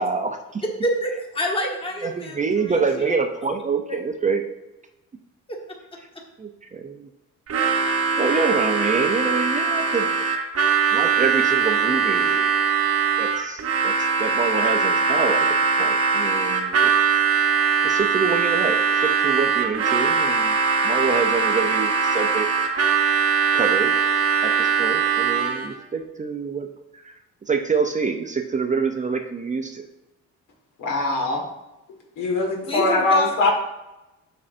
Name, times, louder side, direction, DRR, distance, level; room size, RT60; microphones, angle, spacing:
voice 1, 0.0-0.6 2.0-4.4 6.4-7.1 8.2-10.1 10.9-12.5 13.2-13.9 14.2-15.5 15.8-16.9 17.8-20.6 20.8-22.5 23.5-23.9 24.4-26.7 27.0-27.2 27.5-29.9, right 5 dB, 25° right, 5 dB, 0.5 m, -26 dB
voice 2, 0.8-3.1 3.9-4.0 5.5-6.2 32.7-33.3, left 1 dB, 15° left, 1 dB, 1.3 m, -28 dB
Harmonica, 7.5-25.7, right 6 dB, 50° right, 0.9 m, -21 dB
voice 3, 30.8-31.4 32.2-33.5, left 2 dB, 80° left, 1 dB, 1.7 m, -21 dB
8.5 x 6.1 x 2.6 m, 0.96 s
cardioid pair, 130°, 31 cm